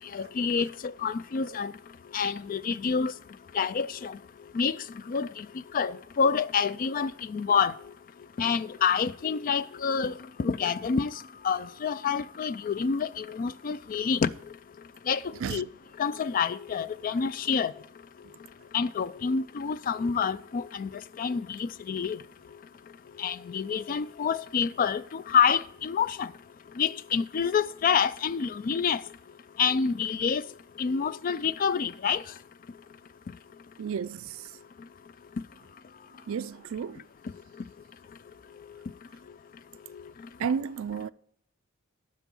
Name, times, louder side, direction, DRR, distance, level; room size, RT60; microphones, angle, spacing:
voice 1, 0.1-1.7 2.1-3.1 3.5-4.2 4.5-4.8 5.1-5.5 5.7-7.7 8.4-11.1 11.4-14.3 15.1-15.2 15.5-15.7 16.0-17.7 18.7-20.9 21.2-22.2 23.2-26.3 26.8-29.0 29.6-30.4 30.8-32.2, left 6 dB, 40° left, 0.3 m, -27 dB
voice 2, 33.8-34.5 36.3-37.0 40.4-41.1, right 6 dB, 65° right, 0.3 m, -32 dB
12.0 x 4.5 x 7.0 m
head